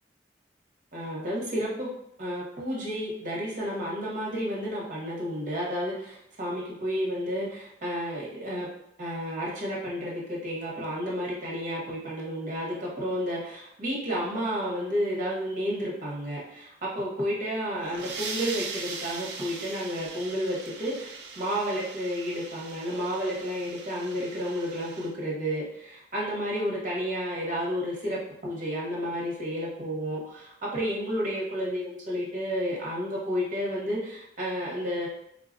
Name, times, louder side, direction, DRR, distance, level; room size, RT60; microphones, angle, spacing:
voice 1, 0.9-1.9 2.2-8.7 9.0-35.1, equal, 45° right, -5 dB, 1.0 m, -31 dB
sound 1, 17.6-25.1, right 4 dB, 70° right, 0.4 m, -40 dB
3.6 x 2.3 x 2.5 m, 0.74 s
head